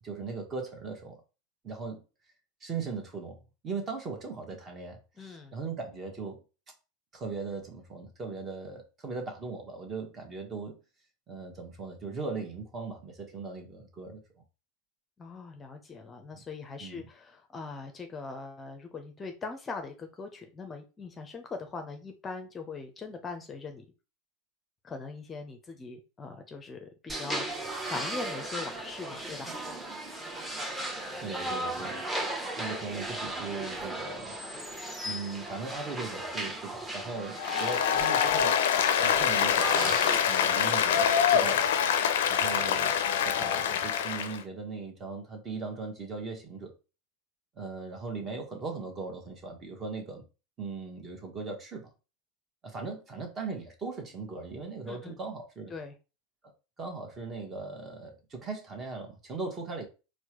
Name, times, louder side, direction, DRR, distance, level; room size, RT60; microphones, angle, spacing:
voice 1, 0.0-1.2 1.6-2.0 2.6-6.4 7.1-10.8 11.3-14.2 16.3-16.4 16.8-17.1 31.2-34.4 35.0-38.6 39.0-40.0 40.3-41.7 42.3-46.7 47.6-50.3 50.6-51.9 52.6-55.7 56.4-56.5 56.8-59.8, right 4 dB, 30° right, 1.1 m, -39 dB
voice 2, 5.2-5.5 15.2-23.8 24.8-29.5 54.9-55.1 55.7-55.9, left 4 dB, 25° left, 0.6 m, -41 dB
sound 1, 27.1-40.2, right 1 dB, 15° right, 1.0 m, -36 dB
Applause, 37.4-44.4, left 8 dB, 70° left, 0.4 m, -25 dB
4.4 x 2.1 x 2.9 m
hypercardioid pair, 85°, 0 cm